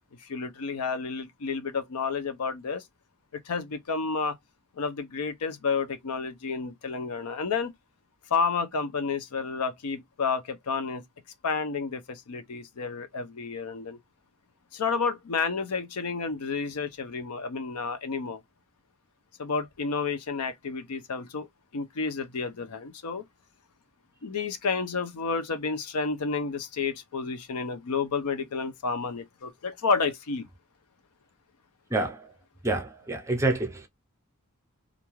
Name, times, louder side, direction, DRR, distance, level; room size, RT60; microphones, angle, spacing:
voice 1, 0.2-2.8 3.5-4.4 4.8-7.7 8.3-11.0 11.4-14.0 14.7-18.4 19.4-21.5 21.7-23.2 24.2-30.5, left 5 dB, 80° left, 0.5 m, -30 dB
voice 2, 31.9-32.3 32.6-33.9, right 2 dB, 15° right, 0.6 m, -28 dB
2.5 x 2.3 x 3.0 m
head